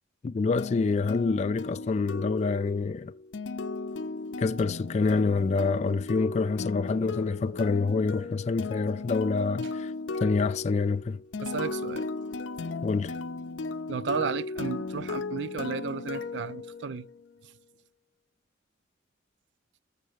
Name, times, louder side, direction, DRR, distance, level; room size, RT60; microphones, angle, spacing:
voice 1, 0.2-3.1 4.4-9.9 10.2-11.2 12.8-13.1, left 4 dB, 35° left, 0.3 m, -27 dB
sound 1, 0.6-17.3, left 3 dB, 85° left, 0.6 m, -36 dB
voice 2, 11.4-12.1 13.9-17.1 17.4-17.5, right 5 dB, 70° right, 0.4 m, -33 dB
7.3 x 6.7 x 6.3 m
head